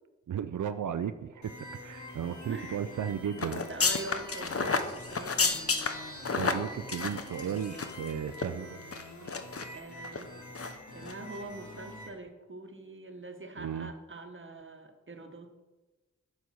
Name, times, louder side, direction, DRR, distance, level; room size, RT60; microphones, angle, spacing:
voice 1, 0.3-1.5 1.8-3.6 6.1-8.8 13.6-13.9, right 8 dB, 85° right, 11 dB, 0.5 m, -35 dB
sound 1, 1.4-12.1, left 1 dB, 70° left, 1.7 m, -46 dB
voice 2, 2.5-2.8 3.4-5.7 9.2-9.3 9.7-10.3 10.9-15.5, right 2 dB, 40° right, 6 dB, 1.3 m, -44 dB
sound 2, 3.4-8.1 8.3-8.5 8.9-9.6 10.0-10.2 10.5-10.7 11.0-11.1, left 4 dB, 50° left, 0.8 m, -31 dB
9.6 x 5.4 x 6.2 m, 1.2 s
wide cardioid pair, 65°, 30 cm